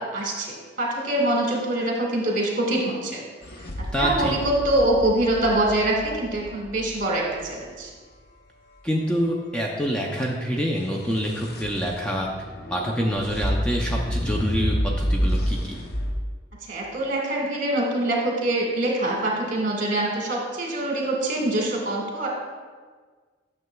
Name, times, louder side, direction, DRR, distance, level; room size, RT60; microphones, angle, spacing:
voice 1, 0.1-3.2 4.0-7.9 16.7-22.3, right 1 dB, 45° right, -2 dB, 1.6 m, -24 dB
sound 1, 3.4-7.5 10.8-16.1, equal, 55° left, 0.7 m, -29 dB
voice 2, 3.9-4.4 8.8-12.3 12.7-15.8, equal, 5° left, -1 dB, 0.5 m, -26 dB
9.4 x 6.6 x 2.3 m, 1.5 s
head